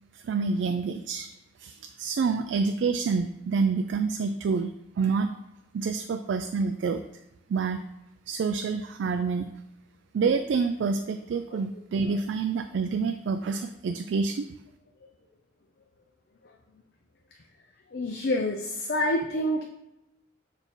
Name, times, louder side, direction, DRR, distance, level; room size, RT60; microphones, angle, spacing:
voice 1, 0.1-1.3 1.6-5.3 5.7-7.0 7.5-7.8 8.3-9.5 10.1-14.5, right 5 dB, 70° right, 7 dB, 0.3 m, -27 dB
voice 2, 17.9-19.6, left 1 dB, 50° left, 2 dB, 0.5 m, -28 dB
7.1 x 2.7 x 5.4 m, 0.89 s
head